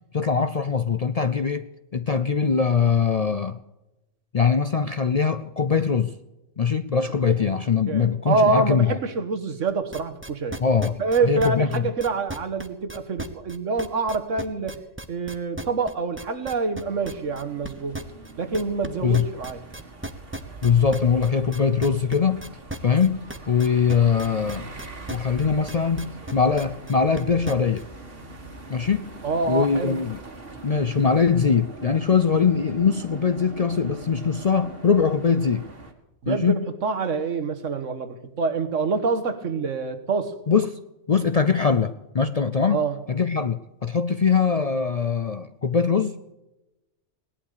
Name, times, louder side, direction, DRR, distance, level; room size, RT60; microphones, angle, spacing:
voice 1, 0.1-3.6 4.3-6.1 6.6-9.0 10.6-11.9 19.0-19.3 20.6-22.4 22.8-23.2 23.5-24.7 25.1-27.8 28.7-29.1 29.5-30.2 30.6-35.6 36.3-36.6 40.5-40.8 41.1-42.8 43.1-46.2, left 6 dB, 45° left, 11 dB, 0.5 m, -22 dB
voice 2, 7.9-10.6 11.0-14.8 15.1-18.0 18.4-19.7 29.2-30.0 36.2-40.4 42.7-43.0, right 4 dB, 80° right, 9 dB, 1.7 m, -26 dB
sound 1, 9.7-27.8, right 1 dB, 10° right, 0.9 m, -36 dB
sound 2, 16.8-35.9, right 2 dB, 50° right, 2.1 m, -42 dB
18.5 x 11.5 x 6.7 m, 0.98 s
omnidirectional pair, 1.3 m